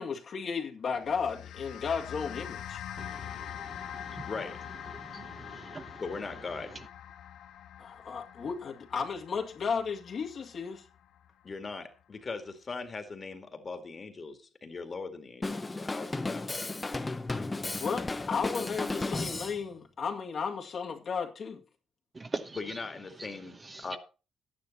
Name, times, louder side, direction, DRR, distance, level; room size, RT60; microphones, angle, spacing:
voice 1, 0.0-2.8 7.8-10.8 17.8-21.6, left 6 dB, 55° left, 2.0 m, -34 dB
sound 1, 0.9-11.5, left 10 dB, 80° left, 0.8 m, -44 dB
voice 2, 3.0-4.3 4.9-6.0 22.1-22.6 23.7-24.0, right 3 dB, 30° right, 1.0 m, -42 dB
voice 3, 4.3-4.6 6.0-6.8 11.4-16.6 22.5-24.0, left 4 dB, 35° left, 2.1 m, -40 dB
Drum kit, 15.4-19.6, left 2 dB, 20° left, 0.9 m, -34 dB
11.5 x 9.7 x 4.2 m
cardioid pair, 90°, 0 cm